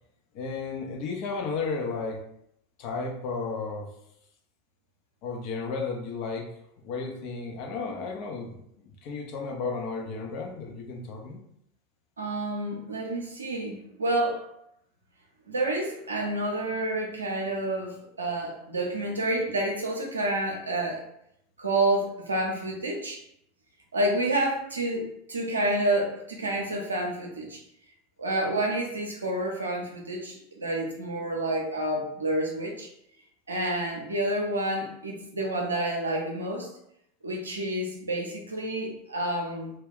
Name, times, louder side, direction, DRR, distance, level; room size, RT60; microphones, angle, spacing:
voice 1, 0.3-2.2 2.8-3.9 5.2-6.5 6.8-11.4, left 4 dB, 55° left, 0 dB, 0.6 m, -33 dB
voice 2, 12.2-14.4 15.5-21.0 21.6-23.2 23.9-27.6 28.2-32.9 33.5-36.7 37.2-39.7, right 1 dB, 85° right, 0 dB, 0.6 m, -29 dB
2.3 x 2.2 x 3.5 m, 0.76 s
hypercardioid pair, 85°, 0 cm